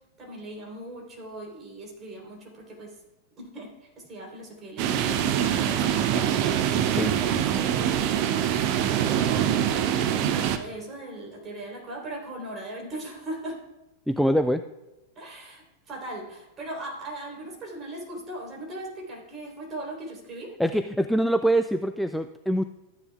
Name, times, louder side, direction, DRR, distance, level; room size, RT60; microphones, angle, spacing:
voice 1, 0.2-3.0 3.4-8.2 8.9-13.6 15.2-20.5, right 1 dB, 25° right, -2 dB, 3.8 m, -39 dB
sound 1, 4.8-10.6, right 10 dB, 45° right, 0.7 m, -24 dB
voice 2, 14.1-14.6 20.6-22.6, right 1 dB, ahead, 9 dB, 0.3 m, -24 dB
13.5 x 9.4 x 2.4 m, 1.0 s
figure-of-eight pair, 90°, 0 cm